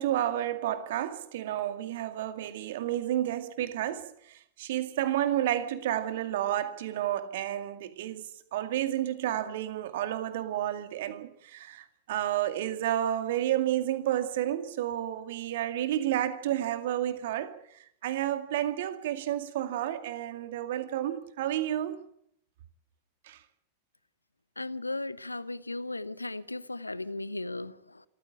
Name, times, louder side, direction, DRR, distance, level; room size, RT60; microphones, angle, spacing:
voice 1, 0.0-8.2 8.5-17.5 18.0-22.0 23.3-23.4, right 12 dB, 55° right, 2.1 m, -31 dB
voice 2, 24.6-28.0, left 2 dB, 85° left, 0.9 m, -36 dB
26.5 x 14.5 x 8.7 m
figure-of-eight pair, 90°, 0 cm